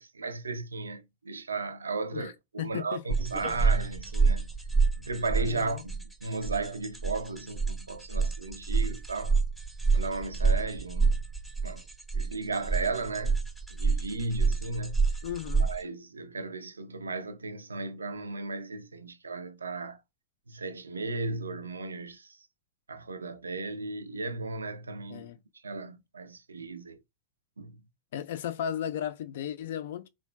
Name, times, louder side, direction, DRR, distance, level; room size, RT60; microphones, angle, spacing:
voice 1, 0.0-4.5 4.9-9.4 9.9-11.2 11.6-11.8 12.1-13.4 13.7-15.2 15.6-20.0 20.5-22.5 22.9-25.3 25.6-27.0 27.6-27.7, right 3 dB, 75° right, 0.3 m, -35 dB
voice 2, 2.6-3.0 3.4-3.6 5.5-5.8 15.2-15.7 25.1-25.4 28.1-30.1, left 9 dB, 55° left, 0.3 m, -35 dB
sound 1, 3.1-15.8, right 4 dB, ahead, 0.6 m, -28 dB
3.4 x 2.1 x 2.2 m
figure-of-eight pair, 90°, 0 cm